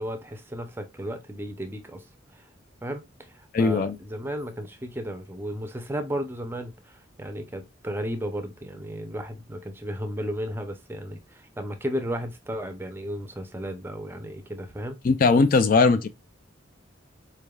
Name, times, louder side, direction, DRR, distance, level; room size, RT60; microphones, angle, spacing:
voice 1, 0.0-2.5 2.8-15.0, equal, 10° right, 0.5 m, -34 dB
voice 2, 3.5-3.9 15.0-16.1, left 4 dB, 45° left, 0.3 m, -19 dB
4.3 x 3.3 x 2.3 m
head